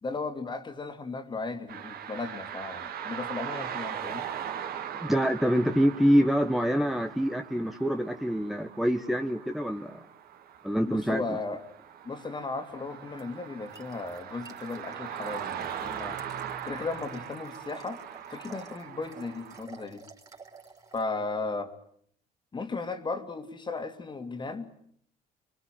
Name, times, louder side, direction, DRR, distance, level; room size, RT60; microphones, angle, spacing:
voice 1, 0.0-4.3 10.8-11.6 12.0-16.2 16.6-18.0 18.3-20.0 20.9-21.7 22.5-24.7, left 3 dB, 25° left, 2.8 m, -36 dB
sound 1, 1.7-19.6, right 9 dB, 65° right, 2.8 m, -40 dB
voice 2, 5.1-10.0 10.6-11.4, equal, ahead, 1.3 m, -26 dB
sound 2, 13.2-21.0, right 4 dB, 20° right, 4.5 m, -52 dB
25.5 x 23.0 x 9.3 m
cardioid pair, 110°, 17 cm